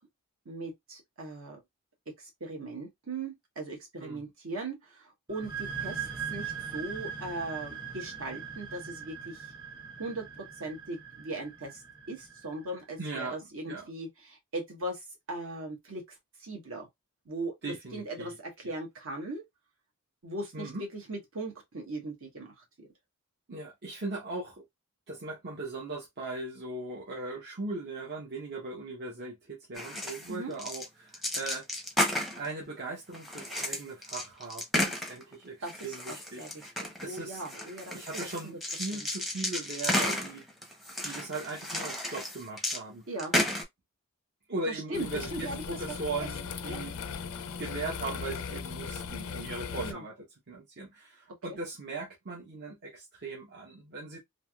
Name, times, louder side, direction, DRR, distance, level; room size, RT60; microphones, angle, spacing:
voice 1, 0.4-1.6 2.2-6.0 6.3-9.5 10.0-11.8 12.1-16.0 16.4-16.9 17.2-17.5 17.9-19.4 20.2-22.9 30.3-30.5 35.6-38.0 38.9-39.0 43.1-43.3 44.7-45.6 45.9-46.3 46.7-46.8 49.8-50.0 51.5-51.6, right 2 dB, 65° right, 1.2 m, -39 dB
voice 2, 4.0-4.3 13.0-13.9 17.6-18.4 18.6-18.7 20.5-20.8 23.5-24.6 25.1-31.7 32.3-37.4 37.9-40.4 41.0-43.0 44.5-47.0 47.6-50.1 50.5-54.2, right 3 dB, 50° right, 0.8 m, -39 dB
sound 1, 5.3-12.7, right 7 dB, 20° right, 1.1 m, -40 dB
sound 2, 29.8-30.3 30.6-30.9 31.1-32.5 33.1-35.3 35.6-42.8 43.2-43.6, left 1 dB, ahead, 0.7 m, -32 dB
sound 3, 44.9-49.9, left 6 dB, 65° left, 0.4 m, -38 dB
3.3 x 2.6 x 2.2 m
head